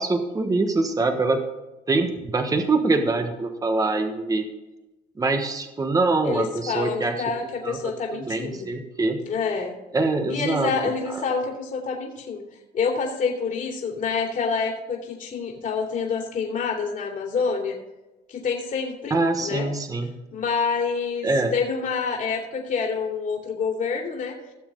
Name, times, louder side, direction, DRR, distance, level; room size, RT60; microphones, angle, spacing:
voice 1, 0.0-1.4 1.9-4.5 5.2-7.2 7.6-9.2 9.9-10.7 11.1-11.2 19.1-20.1 21.2-21.5, right 3 dB, 20° right, 6 dB, 1.2 m, -24 dB
voice 2, 6.2-8.7 9.2-9.8 10.3-17.8 18.3-19.7 20.3-24.4, left 5 dB, 50° left, 0 dB, 2.8 m, -27 dB
17.5 x 7.2 x 3.8 m, 1.0 s
cardioid pair, 110°, 17 cm